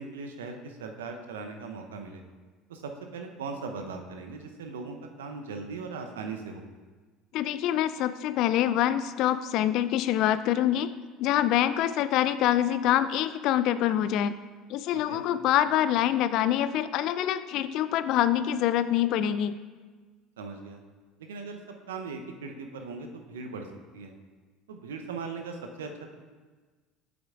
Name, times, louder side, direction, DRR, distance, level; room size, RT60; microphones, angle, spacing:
voice 1, 0.0-2.2 2.7-6.6 15.1-15.2 20.4-20.8 21.2-21.6 21.9-23.7 23.9-24.1 24.7-26.1, right 4 dB, 75° right, 4 dB, 0.7 m, -39 dB
voice 2, 7.3-10.9 11.2-14.4 14.7-19.6, left 11 dB, 55° left, 13 dB, 0.3 m, -25 dB
8.8 x 8.0 x 2.5 m, 1.4 s
figure-of-eight pair, 65°, 0 cm